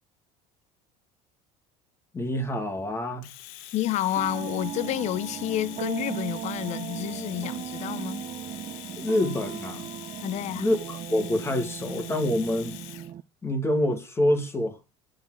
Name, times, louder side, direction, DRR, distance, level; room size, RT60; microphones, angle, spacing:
voice 1, 2.1-3.3 9.0-9.9 10.5-12.8 13.4-14.8, left 1 dB, 15° left, 1.7 m, -26 dB
Domestic sounds home sounds, 3.2-13.1, left 14 dB, 80° left, 0.9 m, -44 dB
voice 2, 3.7-8.3 10.2-10.7, left 13 dB, 45° left, 0.5 m, -30 dB
sound 1, 4.1-13.2, right 12 dB, 35° right, 0.3 m, -37 dB
7.1 x 3.8 x 6.1 m
supercardioid pair, 115°, 16 cm